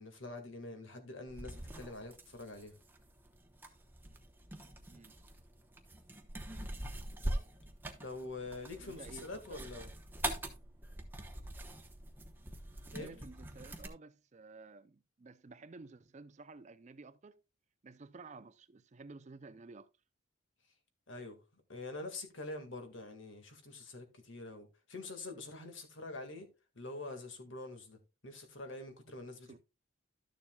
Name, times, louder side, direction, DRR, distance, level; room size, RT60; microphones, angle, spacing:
voice 1, 0.0-2.7 8.0-9.9 12.9-13.1 21.1-26.5 26.7-29.6, left 2 dB, 60° left, 1.8 m, -46 dB
sound 1, 1.3-13.9, right 1 dB, 10° right, 0.9 m, -44 dB
voice 2, 8.8-9.9 11.4-11.5 12.9-17.4 17.8-19.9 29.5-29.6, right 3 dB, 35° right, 0.4 m, -53 dB
12.5 x 7.1 x 2.3 m
head